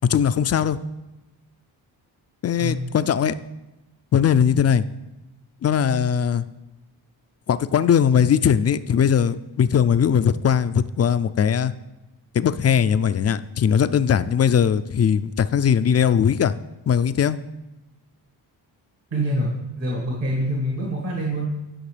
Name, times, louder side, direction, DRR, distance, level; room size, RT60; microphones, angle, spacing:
voice 1, 0.1-0.8 2.4-3.3 4.1-4.8 5.6-6.4 7.5-11.7 12.3-16.5 16.9-17.4, left 8 dB, 35° left, 13 dB, 0.4 m, -19 dB
voice 2, 19.1-21.5, right 1 dB, 65° right, -3 dB, 2.1 m, -25 dB
11.0 x 5.9 x 3.3 m, 1.0 s
supercardioid pair, 55°, 48 cm